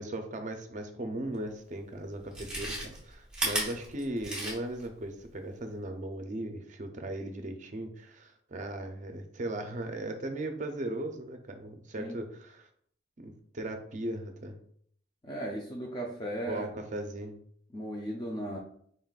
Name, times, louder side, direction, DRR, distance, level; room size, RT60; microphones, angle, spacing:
voice 1, 0.0-12.7 13.2-14.6 16.5-17.4, right 1 dB, 35° right, 5 dB, 0.5 m, -38 dB
Chewing mastication, 1.4-1.5 2.2-4.9 5.2-5.3, right 1 dB, 5° right, 0.8 m, -34 dB
voice 2, 15.2-16.7 17.7-18.6, right 1 dB, 20° left, -1 dB, 0.4 m, -36 dB
4.0 x 3.7 x 2.4 m, 0.62 s
head